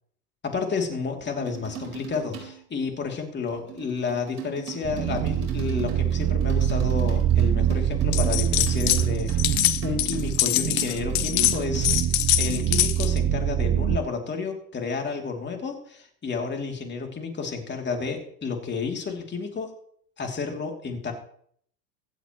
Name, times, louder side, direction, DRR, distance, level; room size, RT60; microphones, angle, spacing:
voice 1, 0.4-12.0 12.4-19.7 20.2-21.1, left 5 dB, 25° left, 2 dB, 3.0 m, -31 dB
sound 1, 1.4-2.6 3.5-11.8, right 10 dB, 85° right, 4.5 m, -41 dB
sound 2, 4.8-14.0, right 10 dB, 30° right, 0.7 m, -25 dB
sound 3, 8.1-9.0 9.3-13.2, left 16 dB, 50° left, 1.1 m, -24 dB
24.0 x 8.2 x 3.1 m, 0.63 s
hypercardioid pair, 100°, 46 cm